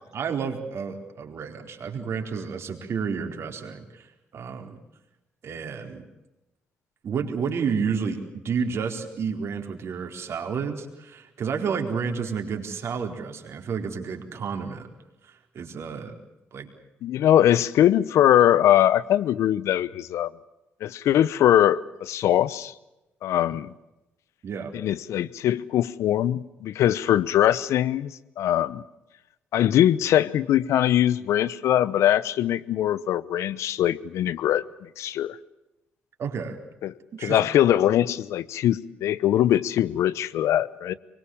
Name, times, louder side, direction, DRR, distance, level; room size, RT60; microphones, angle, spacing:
voice 1, 0.1-4.1 4.3-4.8 5.4-6.1 7.0-8.2 8.4-14.9 15.3-16.1 16.5-16.7 24.4-24.7 36.2-36.6 37.1-37.4, right 6 dB, 60° right, 3 dB, 4.4 m, -30 dB
voice 2, 17.0-20.3 20.8-22.7 23.2-23.7 24.7-28.8 29.5-35.4 36.8-36.9 37.2-40.9, left 11 dB, 75° left, 18 dB, 1.0 m, -22 dB
25.0 x 22.5 x 7.4 m, 0.96 s
supercardioid pair, 55°, 5 cm